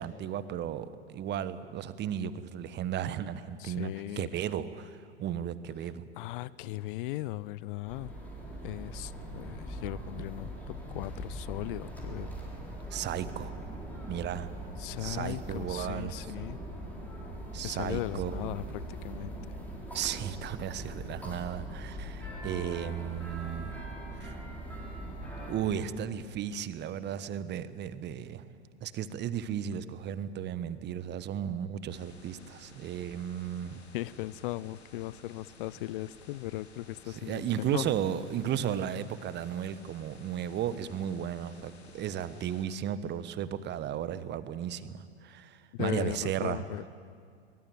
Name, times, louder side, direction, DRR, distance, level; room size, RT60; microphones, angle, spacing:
voice 1, 0.0-6.0 12.9-13.5 14.1-14.5 15.0-16.3 17.5-18.4 19.9-23.8 24.2-24.3 25.5-28.5 28.8-33.8 37.1-46.6, right 9 dB, 35° right, 14 dB, 1.2 m, -35 dB
voice 2, 3.6-4.3 6.2-8.1 8.6-10.5 10.9-12.3 14.8-16.6 17.6-19.4 33.9-37.9 45.7-46.9, left 16 dB, 55° left, 20 dB, 0.6 m, -37 dB
sound 1, 7.8-25.6, right 1 dB, 5° left, 6.8 m, -41 dB
sound 2, 31.9-42.7, left 4 dB, 80° left, 2.8 m, -55 dB
23.0 x 21.0 x 9.3 m, 2.2 s
figure-of-eight pair, 85°, 32 cm